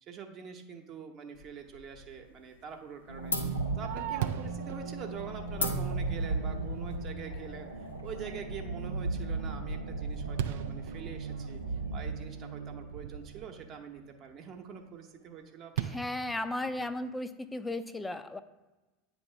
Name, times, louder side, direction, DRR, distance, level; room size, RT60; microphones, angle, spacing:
voice 1, 0.0-3.4 3.8-11.6 11.9-15.9, right 6 dB, 40° right, 3 dB, 0.9 m, -45 dB
sound 1, 1.3-2.2 2.5-2.9 3.3-8.5, equal, 85° left, 0.8 m, -39 dB
sound 2, 3.1-14.1, right 3 dB, 90° right, 0.7 m, -37 dB
Fireworks, 3.4-6.9 7.4-7.5 8.0-8.4 8.8-13.7 15.8-17.1, right 10 dB, 65° right, 0.3 m, -40 dB
voice 2, 15.8-18.4, left 2 dB, 10° left, 10 dB, 0.5 m, -35 dB
8.6 x 2.9 x 5.5 m, 1.1 s
figure-of-eight pair, 75°, 0 cm